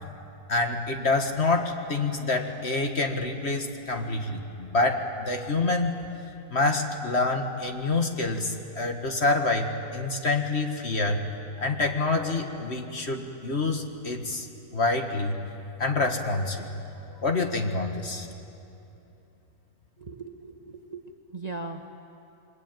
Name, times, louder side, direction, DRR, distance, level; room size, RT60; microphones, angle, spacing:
voice 1, 0.5-6.0 6.5-11.3 11.6-14.5 14.7-15.4 15.8-16.6 17.1-18.3, left 3 dB, 45° left, 4 dB, 1.9 m, -27 dB
voice 2, 20.0-21.0 21.3-21.9, right 3 dB, 30° right, 3 dB, 1.2 m, -38 dB
28.0 x 22.0 x 9.1 m, 2.8 s
omnidirectional pair, 1.7 m